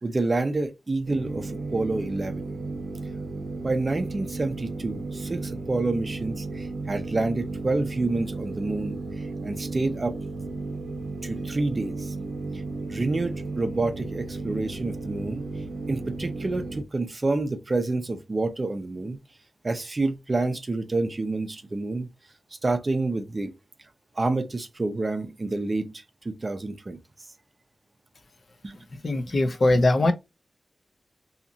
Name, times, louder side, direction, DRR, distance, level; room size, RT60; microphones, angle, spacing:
voice 1, 0.0-2.4 3.6-10.2 11.2-12.1 12.8-15.5 15.9-19.2 19.6-22.1 22.6-23.5 24.2-27.0 28.6-28.8 29.3-29.8, right 2 dB, 35° right, 0.5 m, -28 dB
sound 1, 1.1-16.8, right 3 dB, 80° right, 0.6 m, -34 dB
voice 2, 29.0-30.1, left 2 dB, 50° left, 0.5 m, -21 dB
2.8 x 2.5 x 2.6 m
wide cardioid pair, 105°, 0 cm